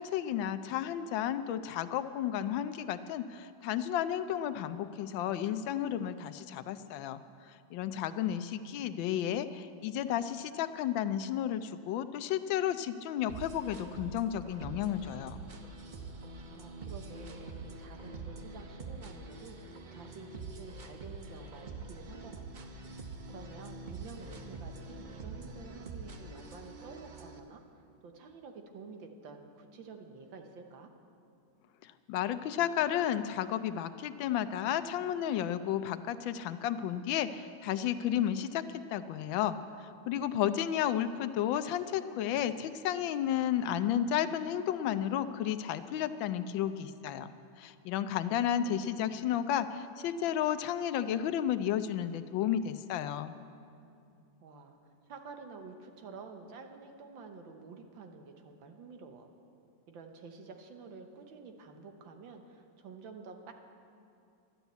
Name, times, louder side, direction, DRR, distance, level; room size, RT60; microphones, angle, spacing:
voice 1, 0.0-15.4 31.8-47.3 47.6-53.3, left 10 dB, 85° left, 12 dB, 1.4 m, -32 dB
voice 2, 8.1-8.8 16.5-23.0 23.3-30.9 48.1-48.4 48.6-49.2 54.4-54.8 55.1-59.3 59.9-63.5, right 4 dB, 80° right, 5 dB, 1.8 m, -50 dB
sound 1, 13.3-27.4, right 3 dB, 45° right, 0.6 m, -45 dB
12.0 x 11.5 x 8.1 m, 2.5 s
omnidirectional pair, 2.1 m